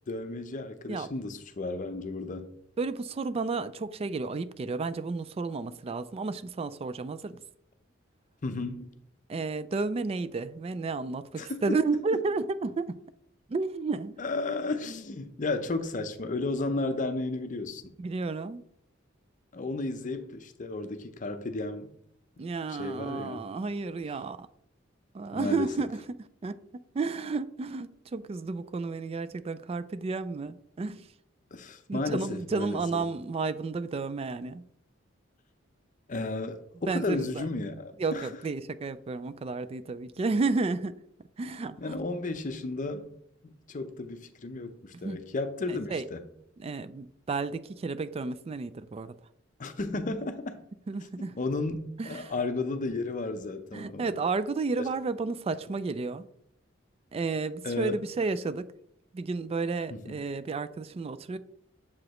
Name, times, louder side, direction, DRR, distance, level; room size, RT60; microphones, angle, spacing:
voice 1, 0.1-2.5 8.4-8.9 11.4-11.8 14.2-17.9 19.5-21.9 22.7-23.4 25.3-25.7 31.5-33.0 36.1-38.3 41.8-43.1 43.4-46.2 49.6-50.6 51.2-54.1 54.8-54.9 57.6-58.0 59.9-60.2, left 3 dB, 40° left, 0.6 m, -33 dB
voice 2, 2.8-7.4 9.3-13.0 13.5-14.2 18.0-18.6 22.4-24.5 25.1-26.0 26.4-26.6 26.9-31.1 31.9-34.6 36.9-37.5 38.0-41.0 41.4-41.9 45.0-45.2 45.7-46.0 46.6-49.1 50.9-51.3 52.0-52.3 53.7-56.3 57.1-58.7 59.1-61.4, right 4 dB, 30° right, 0.3 m, -32 dB
7.1 x 4.9 x 3.0 m
head